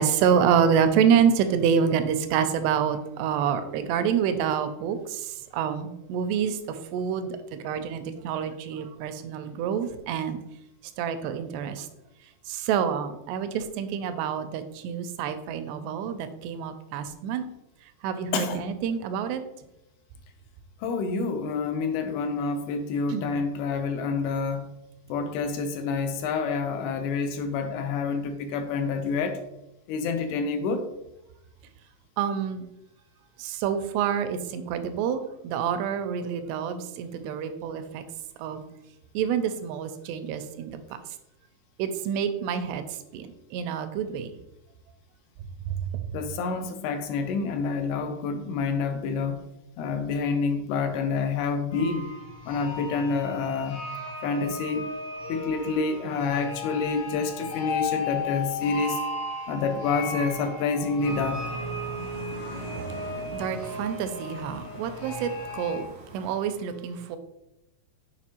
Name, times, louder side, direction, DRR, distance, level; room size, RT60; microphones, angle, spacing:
voice 1, 0.0-10.4 11.0-11.9 12.5-17.5 18.0-19.4 23.1-23.4 32.2-32.7 33.4-38.0 38.4-38.6 39.1-40.7 41.8-42.8 43.1-44.3 45.7-45.8 63.3-65.9 66.1-67.2, right 7 dB, 90° right, 9 dB, 2.7 m, -27 dB
voice 2, 18.3-18.7 20.8-24.7 25.1-29.4 29.9-30.9 46.1-49.5 49.8-52.1 52.5-53.8 54.2-54.9 55.3-59.0 59.5-61.4, left 4 dB, 85° left, 7 dB, 2.4 m, -28 dB
sound 1, 51.7-65.8, left 2 dB, 65° left, 1.6 m, -35 dB
sound 2, 61.0-66.3, right 1 dB, 65° right, 0.9 m, -41 dB
6.9 x 4.7 x 2.9 m, 0.90 s
omnidirectional pair, 4.7 m